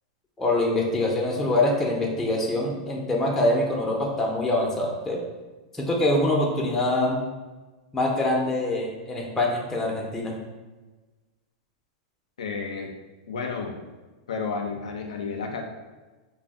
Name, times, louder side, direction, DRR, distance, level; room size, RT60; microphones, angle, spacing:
voice 1, 0.4-5.2 5.7-7.2 7.9-10.3, left 1 dB, 10° left, -2 dB, 0.4 m, -24 dB
voice 2, 12.4-12.9 13.3-13.7 14.3-15.6, left 5 dB, 90° left, 2 dB, 0.3 m, -31 dB
2.4 x 2.0 x 3.4 m, 1.2 s
hypercardioid pair, 115°, 3 cm